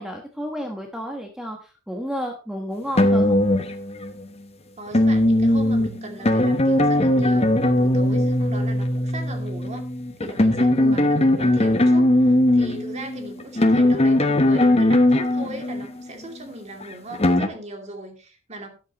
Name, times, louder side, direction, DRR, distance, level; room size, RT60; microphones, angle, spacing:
voice 1, 0.0-3.4 10.7-11.1, equal, 5° right, 2 dB, 1.2 m, -31 dB
sound 1, 2.9-4.3 4.9-16.1 16.8-17.5, left 1 dB, 30° left, 1.1 m, -19 dB
voice 2, 4.8-9.9 10.2-18.7, right 1 dB, 35° right, 4 dB, 2.6 m, -38 dB
13.0 x 9.9 x 3.0 m, 0.33 s
head